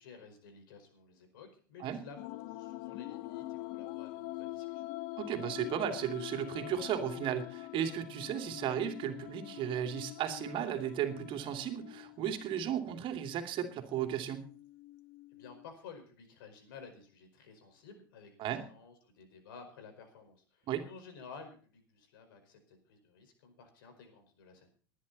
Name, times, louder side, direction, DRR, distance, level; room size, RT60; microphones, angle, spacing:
voice 1, 0.0-4.8 15.3-24.7, left 5 dB, 75° left, 7 dB, 5.0 m, -53 dB
sound 1, 2.2-15.7, left 18 dB, 60° left, 0.8 m, -45 dB
voice 2, 5.2-14.5 18.4-18.6 20.7-20.8, right 9 dB, 45° right, 6 dB, 2.7 m, -35 dB
19.5 x 11.0 x 4.2 m, 0.41 s
hypercardioid pair, 100°, 12 cm